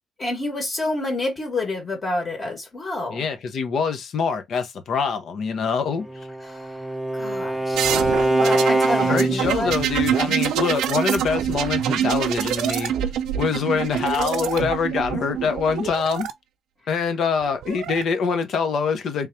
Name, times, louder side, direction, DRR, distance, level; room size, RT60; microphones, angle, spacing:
voice 1, 0.2-3.3 6.4-7.9 8.4-9.7, left 2 dB, 35° left, 1.9 m, -28 dB
voice 2, 3.1-6.1 9.0-12.9 13.4-16.3 16.9-19.3, left 5 dB, 65° left, 1.0 m, -24 dB
Bowed string instrument, 6.0-9.6, right 1 dB, ahead, 0.6 m, -23 dB
sound 1, 7.7-16.3 17.4-18.0, right 10 dB, 85° right, 0.5 m, -25 dB
3.6 x 3.2 x 2.8 m
cardioid pair, 90°, 0 cm